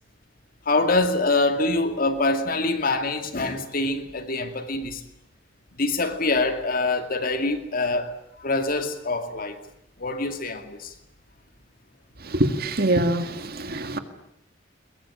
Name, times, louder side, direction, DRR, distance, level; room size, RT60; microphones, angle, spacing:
voice 1, 0.7-5.0 5.8-9.6 10.0-10.9, left 2 dB, 50° left, 2.4 m, -25 dB
voice 2, 12.2-14.0, right 1 dB, 55° right, 2.0 m, -24 dB
22.5 x 22.5 x 9.9 m
head